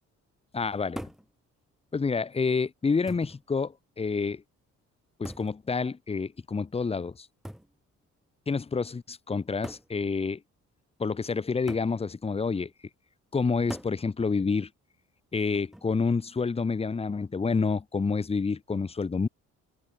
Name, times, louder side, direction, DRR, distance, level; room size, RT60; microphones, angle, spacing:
voice 1, 0.5-1.1 1.9-4.4 5.2-7.3 8.5-10.4 11.0-12.7 13.3-14.7 15.3-19.3, left 4 dB, 20° left, 0.8 m, -28 dB
sound 1, 1.0-1.3 2.3-2.4 3.1-3.4 5.2-5.6 7.4-7.7 8.8-8.9 9.6-9.9 11.7-12.0 13.7-14.0 15.5-15.9, equal, ahead, 1.2 m, -41 dB
cardioid pair, 90°, 30 cm